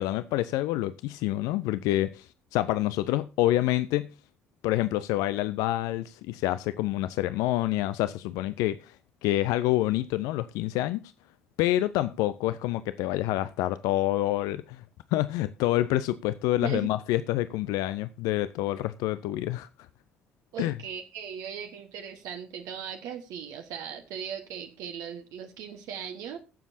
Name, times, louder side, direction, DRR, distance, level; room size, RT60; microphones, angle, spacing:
voice 1, 0.0-2.3 2.5-4.1 4.6-8.9 9.2-11.0 11.6-14.8 15.1-19.7 20.6-20.7, left 15 dB, 60° left, 0.5 m, -27 dB
voice 2, 20.5-26.4, right 8 dB, 60° right, 1.1 m, -38 dB
21.0 x 7.1 x 2.7 m
figure-of-eight pair, 50°, 7 cm